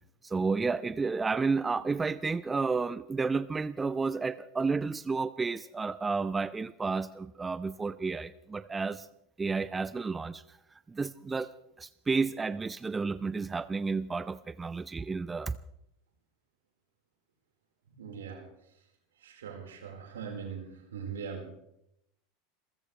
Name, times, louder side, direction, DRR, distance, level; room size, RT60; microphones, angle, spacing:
voice 1, 0.2-9.1 9.4-10.6 10.9-11.5 11.8-15.5, right 4 dB, 15° right, 15 dB, 0.5 m, -31 dB
voice 2, 18.0-18.4 19.2-21.5, right 6 dB, 70° right, 1 dB, 4.6 m, -41 dB
28.0 x 14.5 x 3.3 m, 0.80 s
figure-of-eight pair, 80°, 0 cm